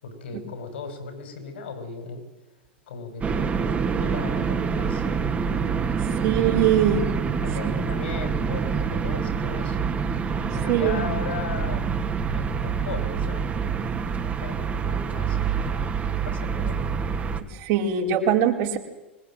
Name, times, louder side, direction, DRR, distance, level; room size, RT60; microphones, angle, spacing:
voice 1, 0.0-2.2 2.9-5.2 6.0-6.5 7.4-9.8 10.5-11.9 12.3-16.0 16.2-16.8, left 5 dB, 70° left, 7 dB, 6.6 m, -37 dB
sound 1, 3.2-17.4, right 6 dB, 25° right, 3.0 m, -26 dB
voice 2, 6.2-7.1 10.7-11.1 17.5-18.8, right 9 dB, 50° right, 1 dB, 5.1 m, -22 dB
25.0 x 20.5 x 9.3 m, 1.0 s
figure-of-eight pair, 90°, 6 cm